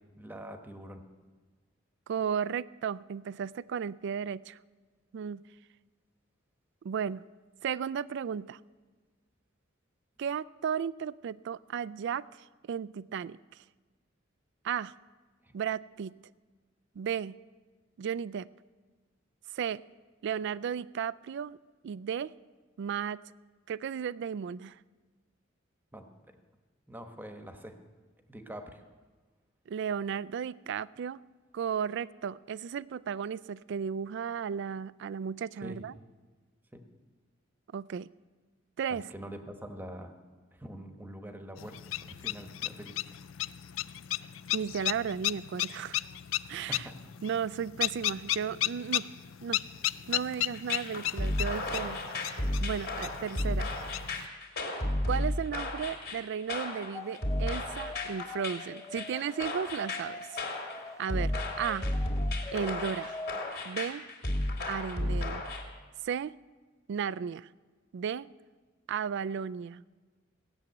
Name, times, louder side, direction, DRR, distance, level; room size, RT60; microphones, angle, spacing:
voice 1, 0.2-1.0 15.4-15.5 25.9-26.4 26.9-27.8 28.3-28.8 35.6-35.8 36.7-36.8 38.9-40.1 40.5-43.0 46.7-47.0, equal, 10° right, 6 dB, 1.1 m, -44 dB
voice 2, 2.1-4.6 5.1-5.4 6.8-7.2 7.6-8.6 10.2-13.6 14.6-14.9 15.5-16.1 17.0-17.4 18.0-18.5 19.5-19.8 20.2-21.6 21.8-22.3 22.8-23.2 23.7-24.8 29.7-31.2 31.5-35.9 37.7-38.1 38.8-39.1 44.5-46.0 46.5-46.9 47.2-49.1 49.4-49.6 50.1-53.7 55.1-60.4 61.0-61.9 62.5-63.2 63.6-64.1 64.7-65.4 66.0-66.4 66.9-67.5 67.9-68.3 68.9-69.8, right 7 dB, 60° right, 18 dB, 0.3 m, -34 dB
sound 1, 41.6-54.3, left 14 dB, 75° left, 0.4 m, -35 dB
sound 2, 50.5-65.6, left 1 dB, 55° left, 2.6 m, -33 dB
sound 3, 56.9-63.5, left 2 dB, 15° left, 0.6 m, -44 dB
16.5 x 7.2 x 9.2 m, 1.3 s
head